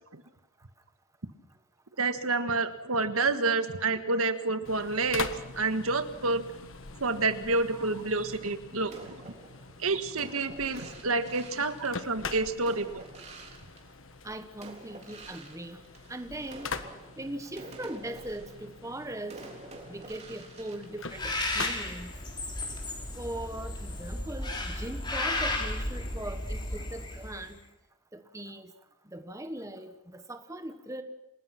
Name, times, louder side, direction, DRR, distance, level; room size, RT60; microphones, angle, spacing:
voice 1, 2.0-6.4 7.0-9.3 9.8-13.0, right 3 dB, 75° right, 9 dB, 1.6 m, -29 dB
sound 1, 4.6-24.2, left 4 dB, 60° left, 1.5 m, -43 dB
sound 2, 8.9-14.3 14.6-21.8, right 2 dB, 30° right, 3.7 m, -49 dB
voice 2, 14.2-15.8 16.1-16.7 17.2-19.4 19.9-22.1 23.2-27.6 28.1-28.7 29.1-31.0, right 1 dB, 15° right, 8 dB, 1.2 m, -40 dB
Bird, 21.1-27.5, left 2 dB, 20° left, 3.9 m, -34 dB
28.5 x 19.5 x 5.9 m, 0.91 s
head